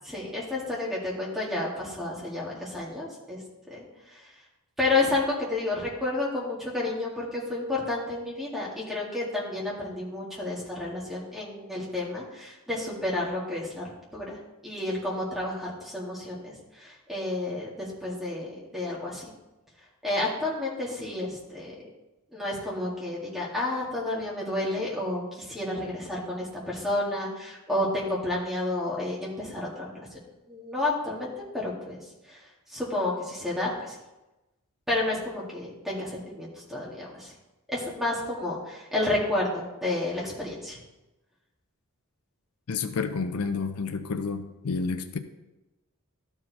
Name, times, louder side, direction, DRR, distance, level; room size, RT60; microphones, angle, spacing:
voice 1, 0.1-3.4 3.7-3.8 4.8-13.8 14.1-14.4 14.6-19.3 20.0-21.8 22.3-29.9 30.5-32.0 32.3-32.4 32.7-33.9 34.9-37.3 37.7-40.8, left 2 dB, ahead, -6 dB, 2.1 m, -30 dB
voice 2, 42.7-45.2, left 4 dB, 75° left, 9 dB, 0.5 m, -30 dB
12.5 x 4.7 x 4.1 m, 1.0 s
head